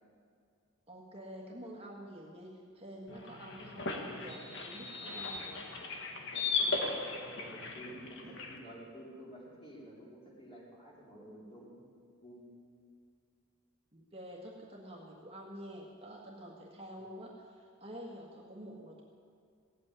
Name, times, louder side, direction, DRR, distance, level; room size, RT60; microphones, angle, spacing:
voice 1, 0.9-5.6 13.9-19.0, equal, 25° right, -2 dB, 1.7 m, -48 dB
sound 1, 3.1-8.6, left 4 dB, 60° left, 1.7 m, -37 dB
voice 2, 7.2-11.8 12.2-12.5, right 1 dB, 25° left, -5 dB, 4.4 m, -51 dB
16.5 x 8.8 x 9.8 m, 2.3 s
head